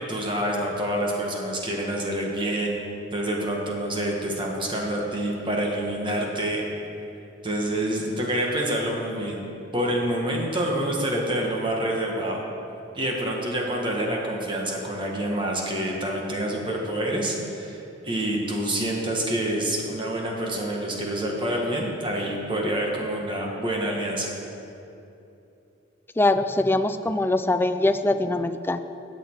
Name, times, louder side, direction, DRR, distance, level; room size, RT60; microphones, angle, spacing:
voice 1, 0.0-2.8 3.1-6.6 7.4-9.4 9.7-12.4 12.9-24.3, right 1 dB, 25° right, -1 dB, 1.3 m, -27 dB
voice 2, 26.2-28.8, left 2 dB, 10° left, 10 dB, 0.3 m, -22 dB
17.0 x 6.7 x 4.5 m, 2.8 s
head